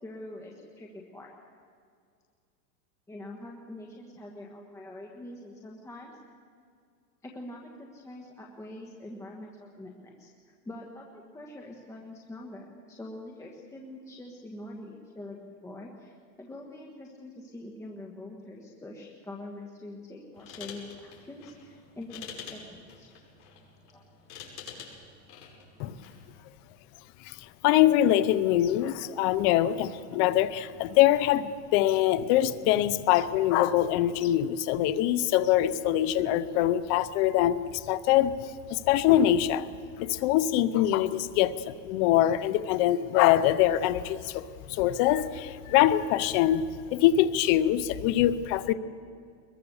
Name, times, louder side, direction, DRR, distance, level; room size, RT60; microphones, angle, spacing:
voice 1, 0.0-1.3 3.1-6.2 7.2-10.3 10.6-23.1 23.9-24.0, left 1 dB, 5° left, -1 dB, 1.4 m, -44 dB
sound 1, 20.3-26.3, left 6 dB, 65° left, 6.6 m, -47 dB
voice 2, 27.6-38.3 38.7-39.7 40.0-46.6 46.9-48.7, left 12 dB, 30° left, 15 dB, 0.6 m, -24 dB
22.5 x 21.5 x 7.0 m, 2.2 s
supercardioid pair, 150°, 50 cm